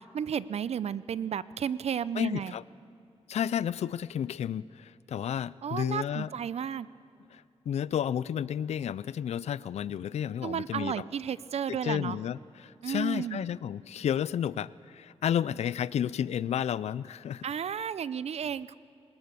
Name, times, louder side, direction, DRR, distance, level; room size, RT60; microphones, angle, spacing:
voice 1, 0.1-2.5 5.6-6.9 10.4-12.2 12.8-13.4 17.4-18.8, right 8 dB, 70° right, 18 dB, 0.6 m, -33 dB
voice 2, 2.1-2.6 3.3-6.3 7.3-11.0 11.7-17.4, left 9 dB, 75° left, 19 dB, 0.4 m, -32 dB
20.5 x 19.5 x 6.8 m, 2.7 s
cardioid pair, 90°, 11 cm